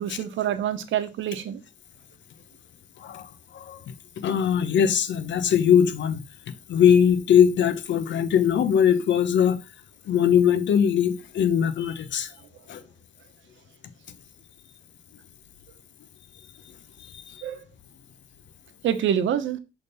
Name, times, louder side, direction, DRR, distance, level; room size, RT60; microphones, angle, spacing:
voice 1, 0.0-1.6 17.4-17.6 18.8-19.6, right 9 dB, 75° right, 1.0 m, -26 dB
voice 2, 3.0-3.8 4.2-6.2 6.7-9.6 10.1-12.3 12.7-12.8 17.3-17.4, left 8 dB, 70° left, 0.9 m, -21 dB
6.4 x 3.5 x 5.5 m
cardioid pair, 90°, 20 cm